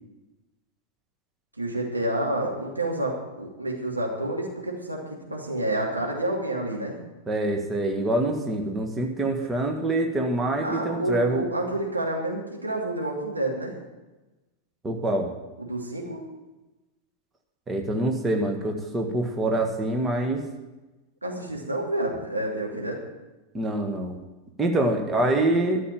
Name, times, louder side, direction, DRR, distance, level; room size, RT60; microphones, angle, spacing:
voice 1, 1.6-7.0 10.6-13.7 15.6-16.2 21.2-23.0, right 1 dB, 85° right, -2 dB, 2.9 m, -29 dB
voice 2, 7.3-11.4 14.8-15.3 17.7-20.4 23.5-24.2 24.6-25.8, right 1 dB, 15° right, 3 dB, 1.7 m, -25 dB
13.0 x 7.4 x 8.9 m, 1.1 s
figure-of-eight pair, 90°, 0 cm